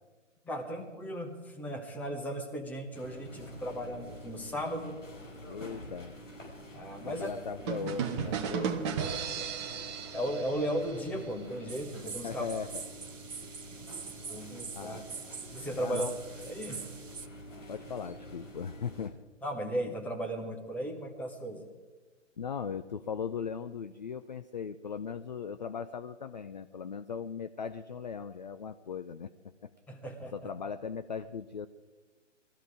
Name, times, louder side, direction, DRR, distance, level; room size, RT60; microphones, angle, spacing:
voice 1, 0.4-5.0 6.7-7.3 9.4-9.5 10.1-12.4 14.3-15.0 15.5-16.1 16.5-16.9 19.4-21.7 29.9-30.3, right 1 dB, 5° left, 2 dB, 1.1 m, -36 dB
sound 1, 2.9-19.1, equal, 85° left, 5.4 m, -48 dB
voice 2, 5.5-6.2 7.0-8.8 12.2-12.8 14.4-14.5 14.7-15.0 15.8-16.2 17.7-19.2 22.4-29.3 29.6-29.7 30.3-31.7, left 6 dB, 35° left, 12 dB, 0.4 m, -38 dB
sound 2, 7.7-11.4, right 7 dB, 25° right, 1.0 m, -35 dB
sound 3, 11.7-17.3, right 6 dB, 80° right, 0.9 m, -44 dB
20.5 x 14.0 x 4.9 m, 1.3 s
figure-of-eight pair, 135°, 37 cm